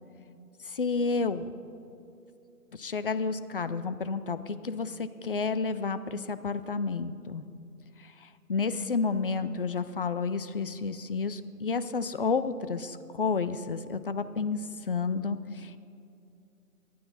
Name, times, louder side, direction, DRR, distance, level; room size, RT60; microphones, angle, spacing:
voice 1, 0.6-1.5 2.7-7.4 8.0-14.6 14.9-15.8, left 4 dB, 40° left, 12 dB, 0.4 m, -31 dB
22.5 x 9.4 x 4.0 m, 2.7 s
hypercardioid pair, 150°, 46 cm